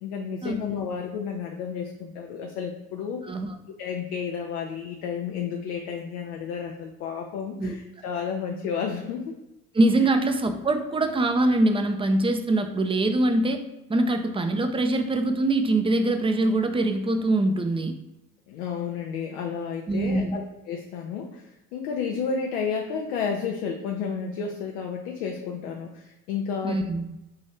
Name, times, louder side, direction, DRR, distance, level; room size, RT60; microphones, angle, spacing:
voice 1, 0.0-3.3 3.8-9.3 10.0-10.1 18.5-20.4 20.7-26.8, left 6 dB, 80° left, 1 dB, 0.6 m, -31 dB
voice 2, 3.2-3.5 7.6-7.7 9.7-13.6 13.9-17.9 19.9-20.4 26.6-27.0, right 2 dB, 15° right, 7 dB, 0.5 m, -23 dB
5.6 x 2.6 x 3.2 m, 0.93 s
hypercardioid pair, 50°, 43 cm